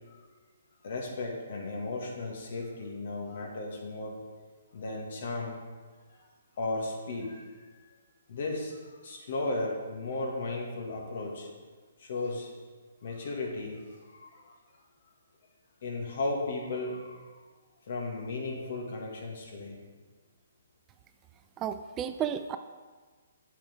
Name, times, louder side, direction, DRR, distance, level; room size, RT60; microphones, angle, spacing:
voice 1, 0.8-4.2 4.7-5.6 6.6-7.4 7.7-8.0 8.3-11.5 12.0-12.5 13.0-14.5 15.8-17.3 17.8-19.8, left 2 dB, 60° left, 0 dB, 1.9 m, -35 dB
voice 2, 21.6-22.6, right 9 dB, 20° right, 9 dB, 0.3 m, -32 dB
8.4 x 7.0 x 3.7 m, 1.4 s
hypercardioid pair, 140°, 0 cm